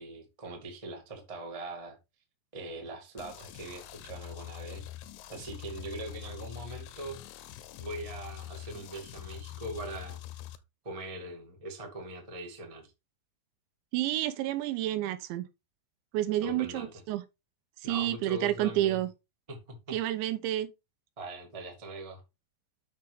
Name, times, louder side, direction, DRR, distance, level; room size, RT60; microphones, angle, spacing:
voice 1, 0.0-2.0 2.5-4.8 5.3-7.5 7.8-10.2 10.8-12.9 16.4-16.9 17.8-19.0 19.5-20.0 21.2-22.2, right 1 dB, 40° right, 0.5 m, -41 dB
sound 1, 3.2-10.6, left 14 dB, 85° left, 3.0 m, -44 dB
voice 2, 13.9-15.5 16.1-17.2 17.8-19.1 19.9-20.7, right 14 dB, 90° right, 3.2 m, -29 dB
8.1 x 6.9 x 3.5 m
omnidirectional pair, 5.1 m